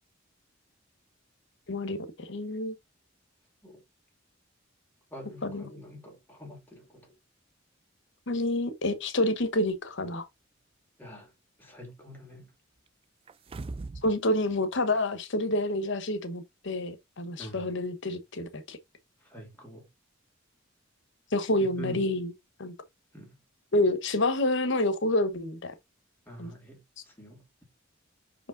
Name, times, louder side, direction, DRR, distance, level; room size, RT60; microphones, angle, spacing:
voice 1, 1.7-2.7 5.4-5.6 8.3-10.3 14.0-18.8 21.3-22.3 22.6-22.7 23.7-25.7 26.4-26.5, left 1 dB, 65° left, 1.0 m, -28 dB
voice 2, 5.1-7.1 11.0-11.3 11.6-12.5 17.4-17.7 19.2-19.9 21.6-22.1 23.1-23.4 26.3-27.4, equal, 10° left, 2.8 m, -45 dB
sound 1, 13.3-14.1 14.5-14.6, right 3 dB, 30° right, 0.3 m, -39 dB
5.7 x 5.0 x 3.8 m
head